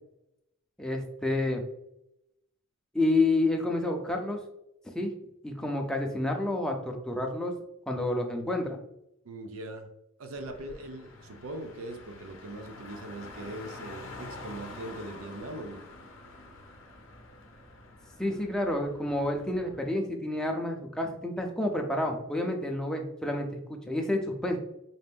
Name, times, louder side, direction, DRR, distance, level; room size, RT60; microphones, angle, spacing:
voice 1, 0.8-1.6 2.9-4.4 4.9-5.1 5.4-7.5 7.9-8.8 18.2-24.6, left 2 dB, 5° left, 2 dB, 0.5 m, -29 dB
voice 2, 9.2-9.9 10.2-15.8, right 1 dB, 85° right, 6 dB, 0.5 m, -41 dB
Car, 10.3-19.9, left 2 dB, 60° left, 0.6 m, -47 dB
4.2 x 2.5 x 3.4 m, 0.82 s
head